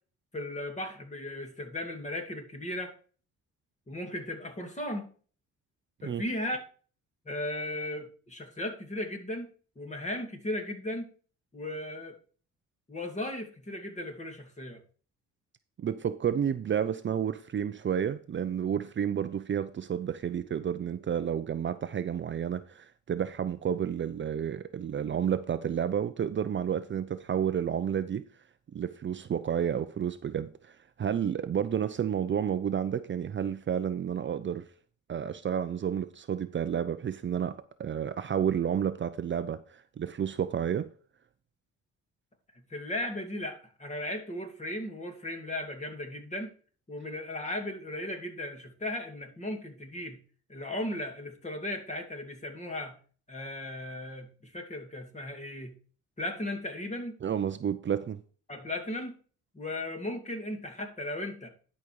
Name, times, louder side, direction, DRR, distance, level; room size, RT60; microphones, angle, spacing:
voice 1, 0.3-2.9 3.9-5.1 6.0-6.6 7.3-9.5 9.8-11.1 11.5-12.1 12.9-14.8 42.5-46.5 46.9-50.2 50.5-53.0 53.3-55.8 56.2-57.2 58.5-59.1 59.5-61.5, left 1 dB, 25° left, 2.4 m, -36 dB
voice 2, 15.8-28.3 28.7-34.7 35.1-40.9 57.2-58.2, right 8 dB, 40° right, 0.6 m, -31 dB
11.0 x 5.2 x 4.7 m
cardioid pair, 90°, 30 cm